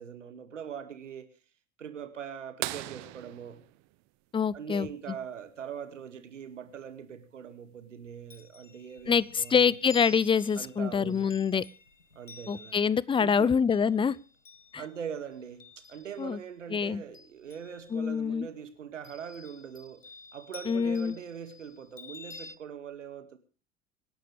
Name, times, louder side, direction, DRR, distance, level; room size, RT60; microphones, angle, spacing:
voice 1, 0.0-1.3 1.8-3.6 4.5-9.7 10.6-11.5 12.2-12.9 13.2-13.5 14.8-20.1 20.3-23.4, right 8 dB, 75° right, 2.3 m, -42 dB
sound 1, 2.6-5.1 7.0-7.1 9.3-9.4 11.1-11.4 12.2-12.3, right 19 dB, 50° right, 1.2 m, -39 dB
voice 2, 4.3-4.9 9.1-11.6 12.5-14.2 14.7-14.8 16.2-16.4 16.7-17.0 17.9-18.5 20.7-21.1, left 6 dB, 15° left, 0.6 m, -25 dB
Chime, 8.0-16.5 16.9-18.2 19.0-22.6, left 4 dB, 90° left, 1.1 m, -51 dB
26.0 x 11.5 x 3.4 m
figure-of-eight pair, 75°, 37 cm